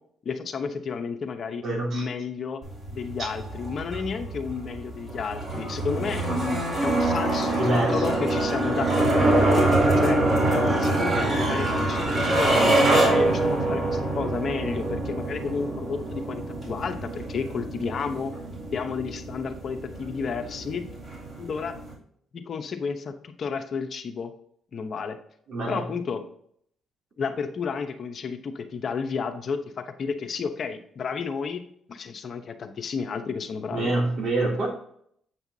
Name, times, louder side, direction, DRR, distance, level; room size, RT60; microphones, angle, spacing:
voice 1, 0.2-1.6 1.9-2.6 2.9-9.7 10.0-10.2 10.5-18.3 18.7-20.8 21.4-21.7 22.3-24.3 24.7-25.2 25.7-26.3 27.2-31.6 31.9-33.9, left 5 dB, 50° left, 7 dB, 0.8 m, -32 dB
voice 2, 1.6-2.1 3.2-3.3 7.6-8.1 25.5-25.8 33.7-34.7, right 2 dB, 65° right, -2 dB, 3.0 m, -25 dB
sound 1, 2.6-21.9, right 2 dB, 40° right, 3.2 m, -25 dB
8.2 x 5.7 x 2.8 m, 0.65 s
cardioid pair, 90°, 0 cm